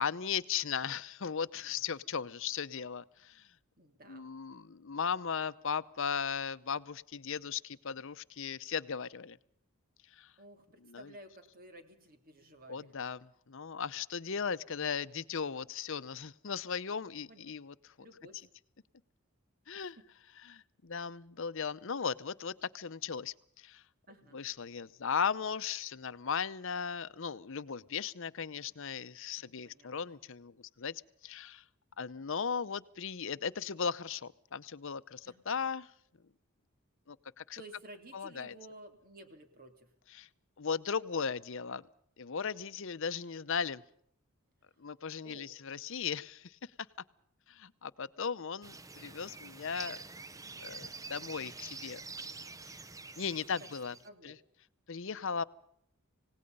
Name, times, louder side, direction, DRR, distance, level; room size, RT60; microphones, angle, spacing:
voice 1, 0.0-3.5 4.1-9.4 10.1-10.3 10.8-11.1 12.7-17.9 19.7-20.0 20.4-23.8 24.3-31.6 32.0-35.9 37.1-37.6 38.1-38.5 40.1-40.3 40.6-41.8 42.2-43.8 44.8-46.7 47.5-50.0 50.6-52.0 53.2-54.0 54.2-54.4 54.9-55.4, left 6 dB, 60° left, 15 dB, 0.7 m, -37 dB
voice 2, 3.8-4.3 10.4-12.9 17.0-17.4 18.0-18.4 20.0-20.1 24.1-24.4 29.4-30.1 35.2-35.4 37.5-39.9 45.2-45.5 54.0-54.3, right 1 dB, 40° right, 6 dB, 3.0 m, -54 dB
sound 1, 48.6-54.1, right 4 dB, 15° right, 0.8 m, -47 dB
27.5 x 18.0 x 5.4 m, 0.69 s
head